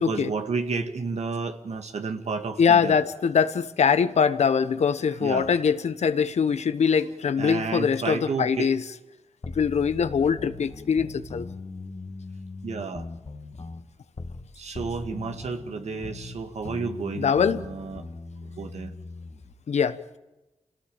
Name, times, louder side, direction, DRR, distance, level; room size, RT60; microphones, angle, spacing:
voice 1, 0.1-3.0 5.2-5.5 7.4-8.7 12.6-13.1 14.6-18.1 18.6-19.0, right 4 dB, 80° right, 6 dB, 2.1 m, -31 dB
voice 2, 2.6-8.8 9.5-11.4 17.2-17.6 19.7-20.0, left 6 dB, 80° left, 12 dB, 1.1 m, -23 dB
sound 1, 9.4-14.5 14.7-19.5, left 3 dB, 50° left, 2.0 m, -40 dB
26.5 x 17.5 x 8.9 m, 1.1 s
cardioid pair, 45°, 11 cm